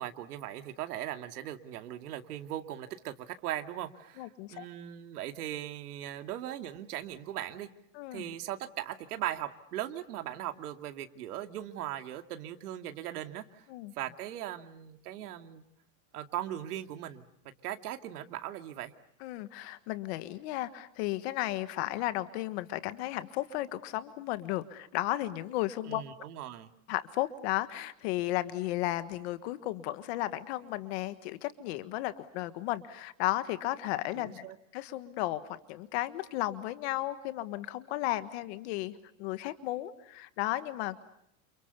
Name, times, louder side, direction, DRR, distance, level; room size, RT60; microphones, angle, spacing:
voice 1, 0.0-7.7 8.1-13.7 14.0-15.6 16.1-17.3 17.6-18.9 25.9-26.7 34.1-34.6, right 12 dB, 80° right, 8 dB, 2.5 m, -39 dB
voice 2, 4.2-4.6 7.9-8.3 13.7-13.9 19.2-26.0 26.9-34.5 34.7-41.0, left 16 dB, 45° left, 13 dB, 1.5 m, -34 dB
30.0 x 29.0 x 6.9 m, 0.74 s
supercardioid pair, 170°, 45 cm